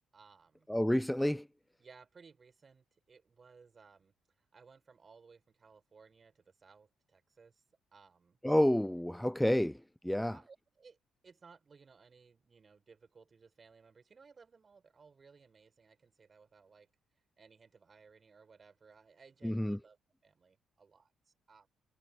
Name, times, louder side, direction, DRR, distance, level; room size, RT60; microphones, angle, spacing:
voice 1, 0.1-0.7 1.8-7.6 7.9-8.4 10.0-11.0 11.2-16.9 17.4-21.7, right 5 dB, 35° right, 6.6 m, -61 dB
voice 2, 0.7-1.5 8.4-9.8 10.0-10.4 19.4-19.8, left 1 dB, 5° left, 0.4 m, -29 dB
cardioid pair, 90°, 0 cm